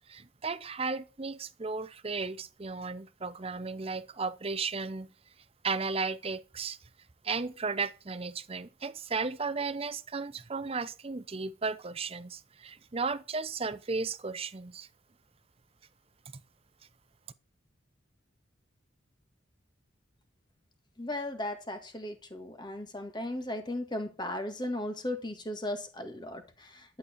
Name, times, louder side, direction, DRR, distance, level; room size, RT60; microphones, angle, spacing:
voice 1, 0.1-5.1 5.6-6.8 7.2-14.9, right 4 dB, 30° right, 0.6 m, -35 dB
voice 2, 21.0-27.0, left 1 dB, 25° left, 1.8 m, -36 dB
11.5 x 8.6 x 4.5 m
head